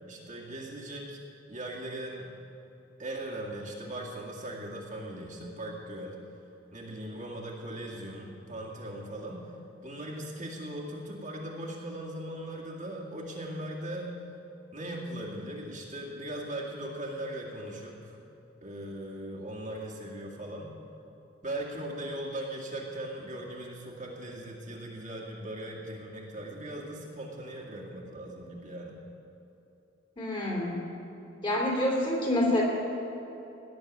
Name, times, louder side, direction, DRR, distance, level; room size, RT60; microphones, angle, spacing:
voice 1, 0.1-1.2 1.5-2.3 3.0-6.2 6.7-9.4 9.8-14.3 14.7-18.2 18.6-20.7 21.4-29.0, right 1 dB, 40° right, -3 dB, 2.1 m, -39 dB
voice 2, 30.2-30.8 31.4-32.6, left 1 dB, 25° left, -2 dB, 3.5 m, -27 dB
18.0 x 7.1 x 9.4 m, 2.9 s
head